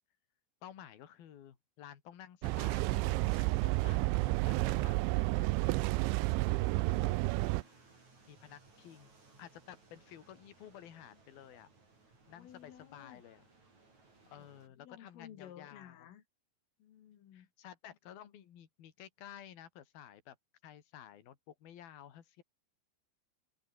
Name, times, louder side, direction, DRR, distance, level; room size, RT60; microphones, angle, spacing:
voice 1, 0.6-5.5 6.0-6.4 8.3-9.1 9.4-11.7 12.3-13.5 14.3-16.1 17.3-20.4 20.6-22.4, left 10 dB, 55° left, 3.8 m, -53 dB
sound 1, 2.4-7.6, right 22 dB, 80° right, 2.7 m, -31 dB
sound 2, 5.2-14.7, right 3 dB, 35° right, 8.8 m, -63 dB
voice 2, 6.2-7.4 12.3-13.2 14.3-16.2 16.8-17.5, left 10 dB, 85° left, 5.4 m, -55 dB
omnidirectional pair, 5.7 m